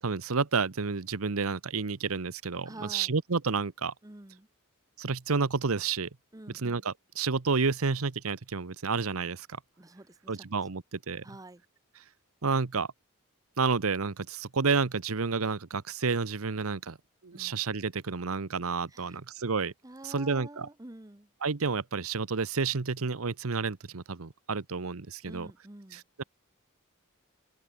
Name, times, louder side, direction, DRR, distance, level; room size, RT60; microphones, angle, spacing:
voice 1, 0.0-3.9 5.0-6.1 6.5-9.6 10.3-11.2 12.4-12.9 13.6-17.0 17.2-19.7 20.0-20.7 21.4-25.5 25.9-26.2, right 4 dB, 75° right, 0.9 m, -30 dB
voice 2, 2.6-3.1 4.0-4.5 6.3-6.8 9.8-10.4 11.2-11.6 17.3-17.6 18.9-19.2 19.8-21.3 25.2-26.0, right 1 dB, 15° right, 1.1 m, -48 dB
open air
head